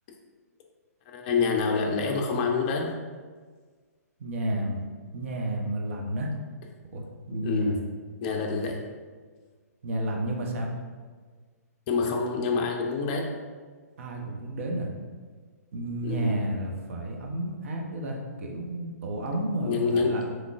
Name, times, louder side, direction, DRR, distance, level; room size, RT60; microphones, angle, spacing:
voice 1, 1.1-2.9 7.3-7.8 8.2-8.8 11.9-13.3 16.0-16.4 19.6-20.2, left 4 dB, 30° left, 2 dB, 0.5 m, -27 dB
voice 2, 4.2-4.8 5.1-6.3 6.9-7.8 9.8-10.7 14.0-14.9 15.7-20.3, right 1 dB, 50° right, 1 dB, 0.6 m, -31 dB
3.6 x 3.1 x 2.3 m, 1.5 s
figure-of-eight pair, 125°, 9 cm